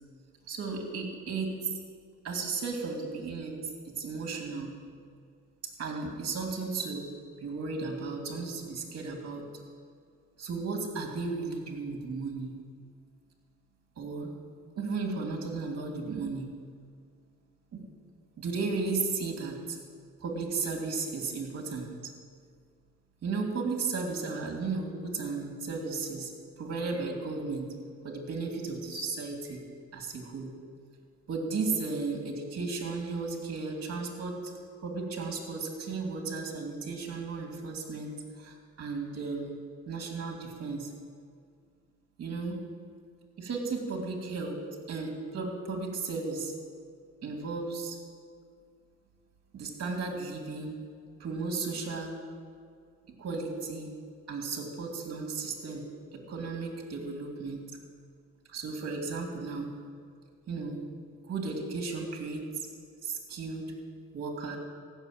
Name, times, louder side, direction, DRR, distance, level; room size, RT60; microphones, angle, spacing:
voice 1, 0.5-1.8 2.2-3.6 3.8-4.7 5.8-7.1 7.4-9.5 10.4-12.5 14.0-14.3 14.8-16.5 17.7-17.8 18.4-19.8 20.2-21.9 23.2-26.3 26.6-27.7 28.0-29.6 29.9-30.5 31.3-34.5 34.8-38.1 38.4-39.6 39.9-40.9 42.2-42.6 43.4-46.5 47.2-48.0 49.5-50.8 51.2-52.2 53.2-53.9 54.3-55.9 56.1-57.6 58.5-59.7 60.5-60.8 61.3-62.4 63.0-63.7 64.1-64.6, right 4 dB, 55° right, 2 dB, 2.7 m, -34 dB
15.5 x 7.1 x 9.0 m, 2.1 s
cardioid pair, 90°, 30 cm